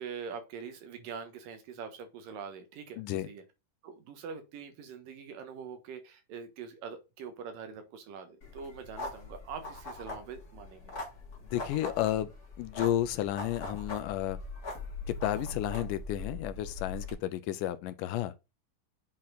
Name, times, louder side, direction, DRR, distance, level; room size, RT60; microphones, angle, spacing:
voice 1, 0.0-3.4 3.8-11.0, right 6 dB, 80° right, 3.0 m, -44 dB
voice 2, 3.0-3.3 11.5-12.3 12.6-14.4 15.1-18.3, left 13 dB, 80° left, 2.1 m, -32 dB
sound 1, 8.4-17.1, left 3 dB, 30° left, 2.2 m, -41 dB
8.5 x 4.3 x 3.9 m
omnidirectional pair, 3.9 m